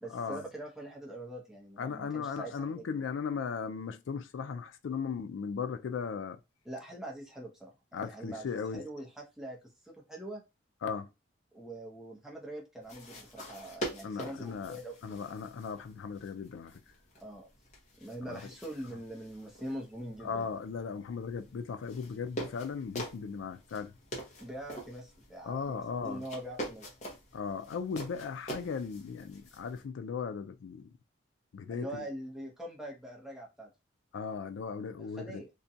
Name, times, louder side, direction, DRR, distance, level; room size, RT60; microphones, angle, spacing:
voice 1, 0.0-3.0 6.6-10.4 11.5-15.3 17.2-17.5 18.0-20.5 24.4-26.9 31.7-33.7 35.0-35.5, right 1 dB, 5° right, 0.6 m, -43 dB
voice 2, 1.8-6.4 7.9-8.9 10.8-11.1 14.0-14.8 15.0-16.8 18.3-18.4 20.2-23.9 25.4-26.2 27.3-30.9 31.5-32.1 34.1-35.4, left 6 dB, 80° left, 0.4 m, -37 dB
sound 1, 12.8-29.8, right 1 dB, 40° left, 0.7 m, -45 dB
2.5 x 2.2 x 2.6 m
head